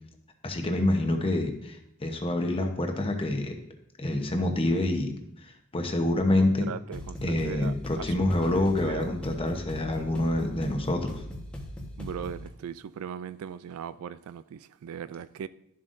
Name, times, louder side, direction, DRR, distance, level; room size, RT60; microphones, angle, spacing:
voice 1, 0.4-3.6 4.0-5.1 5.4-6.7 7.2-11.2, left 1 dB, 25° left, 1.0 m, -27 dB
voice 2, 6.4-8.5 8.8-9.1 12.0-15.5, right 7 dB, 70° right, 0.3 m, -39 dB
sound 1, 6.9-12.5, left 1 dB, 5° left, 1.2 m, -39 dB
12.0 x 7.4 x 2.6 m
head